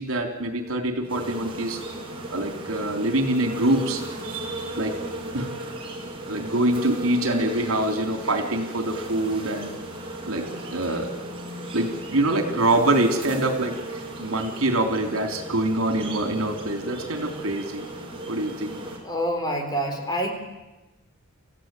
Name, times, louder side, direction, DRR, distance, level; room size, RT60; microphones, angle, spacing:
voice 1, 0.0-1.8 2.3-4.9 5.3-5.5 6.3-9.7 10.3-10.5 10.7-11.1 11.7-17.8 18.3-18.8, right 1 dB, 75° right, 6 dB, 3.5 m, -25 dB
sound 1, 1.1-19.0, right 1 dB, 25° right, 5.0 m, -36 dB
voice 2, 19.0-20.3, equal, 20° left, 4 dB, 4.1 m, -26 dB
28.5 x 15.5 x 9.1 m, 1.1 s
head